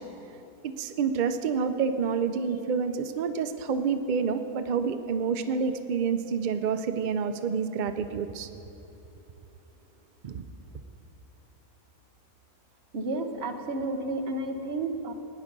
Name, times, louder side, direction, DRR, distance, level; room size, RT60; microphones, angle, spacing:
voice 1, 0.6-8.5 10.2-10.4, right 6 dB, 80° right, 8 dB, 0.4 m, -28 dB
voice 2, 12.9-15.1, right 2 dB, 50° right, 5 dB, 1.1 m, -31 dB
17.0 x 10.0 x 5.3 m, 3.0 s
omnidirectional pair, 1.6 m